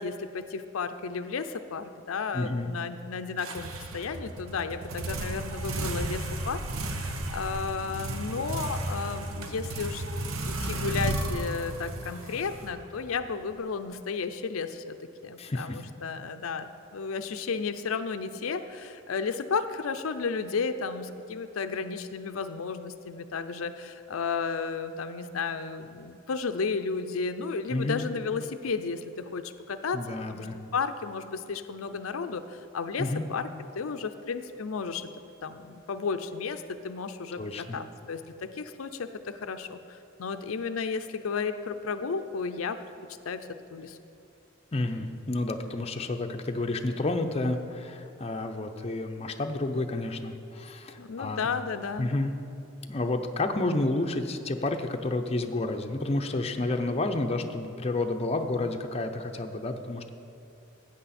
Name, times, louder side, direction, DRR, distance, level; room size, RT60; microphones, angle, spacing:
voice 1, 0.0-10.0 10.4-15.0 15.2-30.5 30.7-33.5 33.8-35.1 35.4-42.8 43.2-44.0 51.0-52.1, left 5 dB, 90° left, 9 dB, 0.5 m, -33 dB
voice 2, 2.3-2.7 15.4-15.8 27.7-28.1 29.9-30.6 33.0-33.3 37.4-37.8 44.7-51.5 52.0-52.3 52.8-60.1, left 2 dB, 30° left, 5 dB, 0.6 m, -30 dB
sound 1, 3.4-13.2, right 2 dB, 85° right, 0.9 m, -34 dB
13.5 x 8.6 x 4.2 m, 2.8 s
head